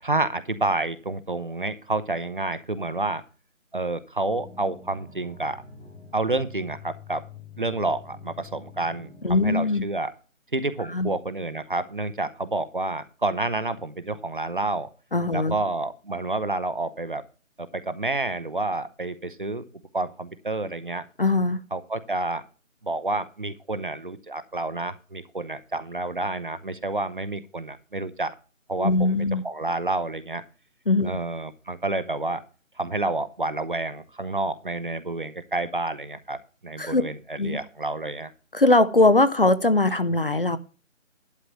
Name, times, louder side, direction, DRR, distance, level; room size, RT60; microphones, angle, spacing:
voice 1, 0.0-3.2 3.7-5.6 6.1-7.2 7.6-10.1 10.5-14.9 15.3-17.2 17.7-19.6 19.9-21.0 21.7-22.4 22.8-28.3 28.7-28.9 29.4-30.4 31.0-32.4 32.8-36.4 36.6-38.3, right 2 dB, 40° right, 0.6 m, -29 dB
sound 1, 4.3-9.6, left 4 dB, 75° left, 4.6 m, -46 dB
voice 2, 9.2-9.9 10.9-11.1 15.1-15.6 21.2-21.6 28.8-29.4 30.9-31.1 36.8-37.0 37.4-37.6 38.5-40.6, left 2 dB, 45° left, 0.5 m, -21 dB
11.5 x 4.9 x 6.8 m
figure-of-eight pair, 165°, 40 cm